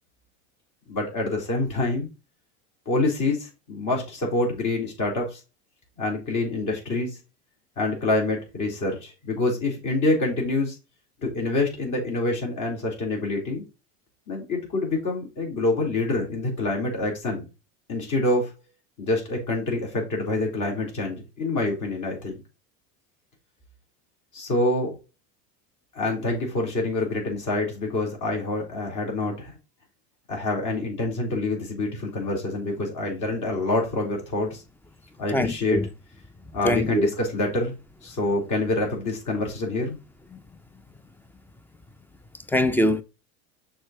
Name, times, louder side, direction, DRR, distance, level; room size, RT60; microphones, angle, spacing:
voice 1, 0.9-2.1 2.9-5.4 6.0-7.1 7.8-10.7 11.2-13.6 14.3-17.4 17.9-18.5 19.0-22.4 24.3-24.9 25.9-29.5 30.3-34.6 35.2-35.9 36.5-37.7 38.0-40.0, left 2 dB, 40° left, 4.2 m, -26 dB
voice 2, 35.3-35.8 36.6-37.1 42.5-43.0, left 1 dB, 5° left, 0.5 m, -22 dB
6.5 x 4.5 x 4.4 m
hypercardioid pair, 95°, 45 cm